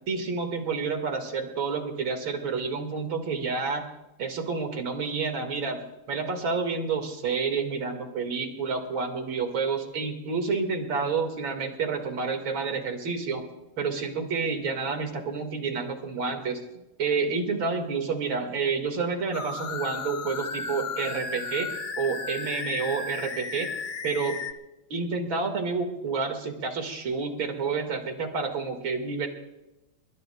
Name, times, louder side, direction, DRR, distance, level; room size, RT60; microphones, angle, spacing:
voice 1, 0.1-3.8 4.2-5.8 6.1-13.4 13.8-16.6 17.0-23.7 24.0-24.4 24.9-29.3, right 4 dB, 75° right, 5 dB, 2.8 m, -29 dB
sound 1, 19.3-24.5, left 5 dB, 75° left, 0.4 m, -34 dB
22.0 x 21.0 x 2.3 m, 0.96 s
omnidirectional pair, 2.2 m